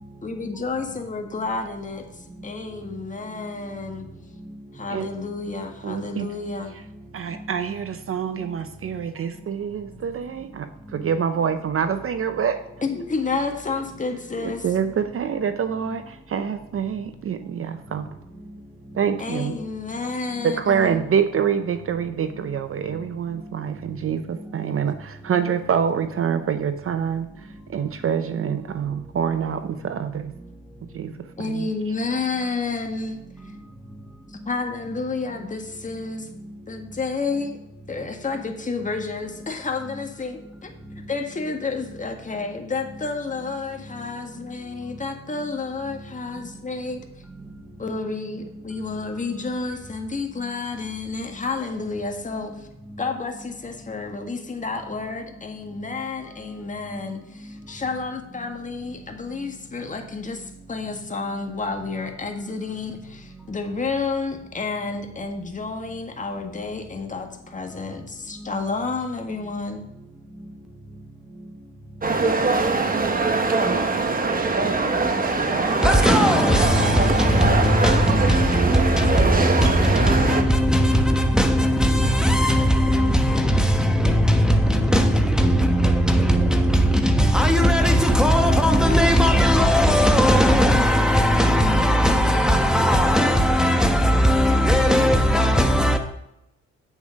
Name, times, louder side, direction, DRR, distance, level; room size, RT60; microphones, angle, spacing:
voice 1, 0.2-2.0 2.4-4.1 4.7-6.7 12.8-14.6 19.2-21.0 31.4-33.2 34.5-36.3 36.7-37.6 37.9-40.7 41.1-47.0 47.8-52.7 53.0-69.8, left 4 dB, 25° left, 1.7 m, -30 dB
voice 2, 5.8-6.3 7.1-12.6 14.4-18.1 18.9-19.6 20.4-30.3 30.9-31.7, right 7 dB, 45° right, 0.7 m, -26 dB
sound 1, 72.0-80.4, right 3 dB, 30° right, 1.3 m, -22 dB
voice 3, 75.1-96.0, equal, ahead, 1.2 m, -18 dB
8.4 x 7.2 x 5.2 m
cardioid pair, 90°, 30 cm